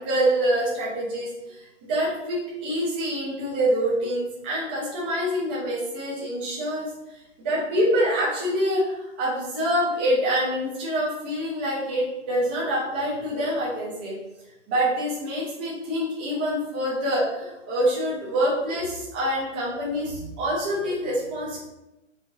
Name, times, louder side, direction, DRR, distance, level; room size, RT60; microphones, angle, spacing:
voice 1, 0.0-7.2 7.4-14.1 14.7-21.6, equal, 10° right, -6 dB, 0.3 m, -26 dB
3.7 x 2.7 x 4.5 m, 0.97 s
hypercardioid pair, 135°, 37 cm